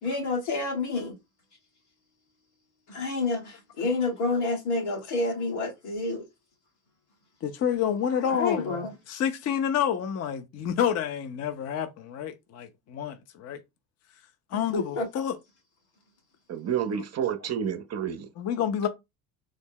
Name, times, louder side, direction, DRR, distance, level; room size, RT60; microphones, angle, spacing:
voice 1, 0.0-1.2 2.9-6.2 8.3-8.9 14.7-15.1, left 3 dB, 80° left, 1.8 m, -29 dB
voice 2, 7.4-8.8 9.1-13.6 14.5-15.4 18.4-18.9, left 8 dB, 35° left, 0.5 m, -28 dB
voice 3, 16.5-18.3, right 8 dB, 35° right, 0.5 m, -29 dB
3.7 x 2.0 x 3.6 m
supercardioid pair, 80°, 47 cm